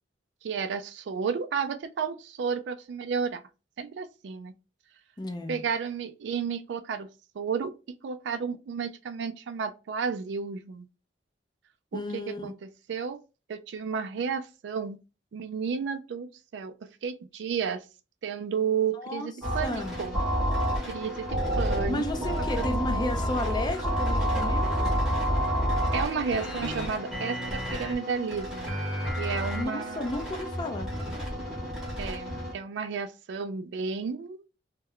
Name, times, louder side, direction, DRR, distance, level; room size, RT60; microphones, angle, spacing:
voice 1, 0.4-3.4 3.8-4.5 5.5-7.1 7.3-10.9 11.9-13.2 13.5-15.0 15.3-17.9 18.2-20.2 20.9-22.0 22.6-23.6 25.9-28.8 29.2-30.1 32.0-34.4, right 6 dB, 80° right, 0.3 m, -32 dB
voice 2, 5.2-5.6 11.9-12.5 18.9-19.3 19.6-20.0 21.9-24.9 29.6-30.9, left 1 dB, 25° left, 0.4 m, -33 dB
sound 1, 19.4-32.5, equal, 5° right, 0.8 m, -29 dB
2.2 x 2.1 x 3.5 m
head